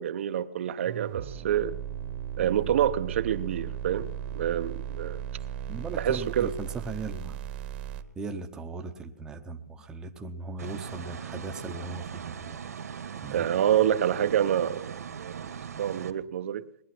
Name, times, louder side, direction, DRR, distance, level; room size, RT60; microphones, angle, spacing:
voice 1, 0.0-1.8 2.4-4.1 4.3-5.2 6.0-6.5 13.3-15.5 15.8-16.6, right 10 dB, 55° right, 0.7 m, -27 dB
sound 1, 0.9-8.0, right 9 dB, 40° right, 1.1 m, -36 dB
voice 2, 5.7-7.4 8.2-12.6 13.2-13.5, right 3 dB, 10° right, 0.8 m, -38 dB
sound 2, 10.6-16.1, right 7 dB, 85° right, 1.9 m, -39 dB
20.5 x 10.5 x 6.0 m
hypercardioid pair, 165°, 8 cm